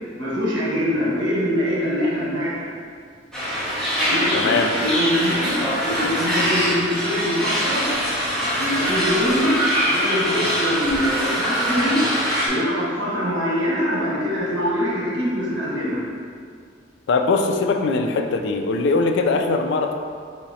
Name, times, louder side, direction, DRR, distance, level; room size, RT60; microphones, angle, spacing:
voice 1, 0.2-2.7 4.1-8.0 8.5-12.1 12.5-16.1, equal, 75° right, -7 dB, 1.4 m, -23 dB
sound 1, 3.3-12.5, equal, 5° left, 1.0 m, -23 dB
voice 2, 4.3-4.7 17.1-19.9, left 3 dB, 65° left, 5 dB, 0.4 m, -21 dB
3.9 x 2.8 x 4.1 m, 2.2 s
head